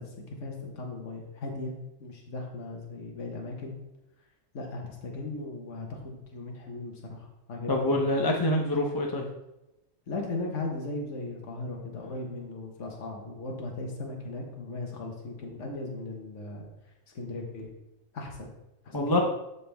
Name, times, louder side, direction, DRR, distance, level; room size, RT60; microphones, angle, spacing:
voice 1, 0.0-3.8 4.5-8.1 10.1-16.6 17.1-17.7 18.1-18.5 18.8-19.1, left 2 dB, 65° left, 1 dB, 1.5 m, -37 dB
voice 2, 7.7-9.3 18.9-19.2, left 1 dB, 20° left, 0 dB, 0.7 m, -25 dB
12.5 x 4.2 x 3.4 m, 0.94 s
omnidirectional pair, 1.3 m